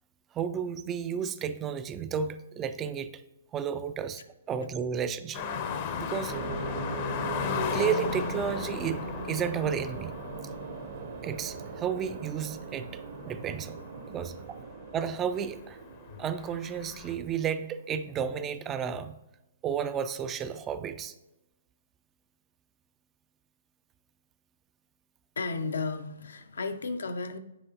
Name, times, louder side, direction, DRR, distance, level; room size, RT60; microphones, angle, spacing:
voice 1, 0.3-3.2 3.5-4.2 4.5-5.5 6.0-6.4 7.7-10.1 11.2-13.8 14.0-14.4 14.9-15.8 16.2-19.2 19.6-21.1, right 7 dB, 20° right, 12 dB, 0.3 m, -32 dB
sound 1, 5.3-14.4 14.9-15.0 15.4-17.1, left 6 dB, 40° left, 0.6 m, -36 dB
sound 2, 6.3-17.7, right 5 dB, 55° right, 0.9 m, -40 dB
voice 2, 25.4-27.4, left 4 dB, 80° left, 8 dB, 0.6 m, -33 dB
8.7 x 4.7 x 2.8 m, 0.96 s
hypercardioid pair, 140°, 0 cm